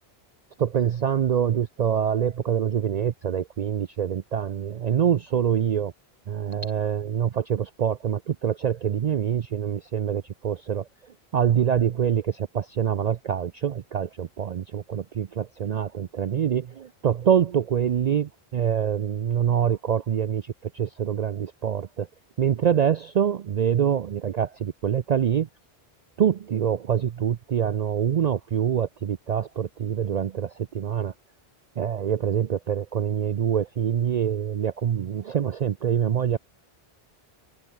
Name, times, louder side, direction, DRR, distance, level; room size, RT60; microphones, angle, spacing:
voice 1, 0.6-5.9 6.3-10.9 11.3-22.1 22.4-25.5 26.2-31.1 31.8-36.4, right 8 dB, 50° right, 0.5 m, -25 dB
open air
omnidirectional pair, 1.1 m